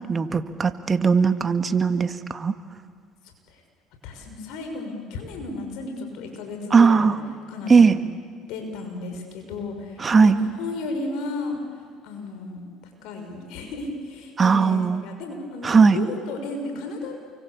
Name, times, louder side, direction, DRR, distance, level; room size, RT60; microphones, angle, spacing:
voice 1, 0.1-2.5 6.7-7.2 7.7-8.0 10.0-10.4 14.4-15.0 15.6-16.0, right 5 dB, 30° right, 10 dB, 1.7 m, -18 dB
voice 2, 4.0-7.1 7.5-8.0 8.5-11.6 12.0-17.2, left 3 dB, 70° left, 4 dB, 6.4 m, -34 dB
29.0 x 24.0 x 8.6 m, 2.1 s
supercardioid pair, 80°, 0 cm